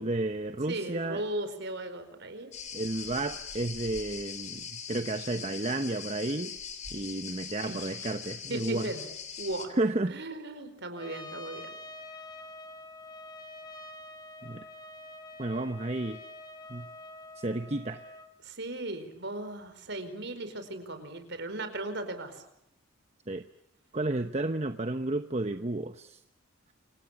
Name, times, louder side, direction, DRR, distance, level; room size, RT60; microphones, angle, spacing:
voice 1, 0.0-1.2 2.7-6.6 6.9-8.9 9.8-10.2 14.4-14.6 15.4-16.2 16.7-16.9 17.4-18.0 23.3-23.5 23.9-26.2, right 2 dB, 35° right, 9 dB, 1.0 m, -32 dB
voice 2, 0.7-2.5 7.6-7.9 8.5-9.0 9.4-9.8 10.1-11.7 18.4-22.4, right 2 dB, 60° right, 9 dB, 4.8 m, -37 dB
sound 1, 2.5-9.7, left 7 dB, 35° left, 3.7 m, -41 dB
Trumpet, 11.0-18.3, left 2 dB, 20° left, 2.6 m, -46 dB
28.5 x 26.0 x 7.4 m, 0.76 s
head